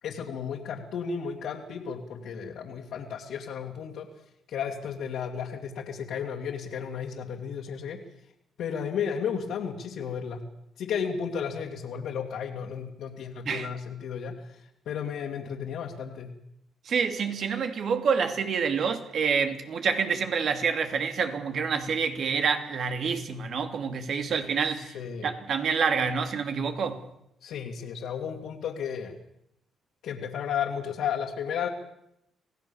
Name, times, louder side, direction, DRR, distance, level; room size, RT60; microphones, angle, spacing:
voice 1, 0.0-4.1 4.5-8.0 8.6-10.4 10.8-16.3 24.7-25.3 27.4-29.2 30.0-31.7, left 7 dB, 75° left, 2.5 m, -33 dB
voice 2, 16.9-25.0 25.2-27.1, right 6 dB, 60° right, 2.8 m, -27 dB
26.5 x 17.5 x 7.2 m
cardioid pair, 90°, 0 cm